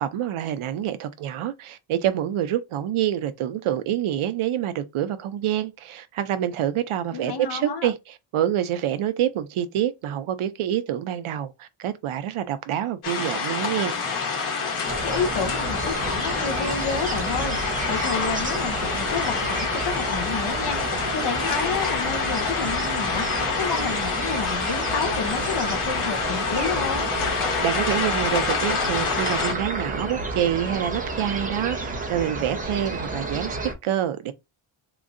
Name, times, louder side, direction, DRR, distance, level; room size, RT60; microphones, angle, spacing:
voice 1, 0.0-13.9 27.6-33.6 33.8-34.3, right 11 dB, 75° right, 0.7 m, -27 dB
voice 2, 7.1-7.9 15.0-17.6 17.9-27.1, left 5 dB, 55° left, 0.8 m, -30 dB
sound 1, 13.0-29.5, left 5 dB, 80° left, 1.3 m, -27 dB
sound 2, 14.8-33.7, right 2 dB, 15° right, 0.7 m, -31 dB
3.6 x 3.0 x 2.5 m
wide cardioid pair, 175°, 50 cm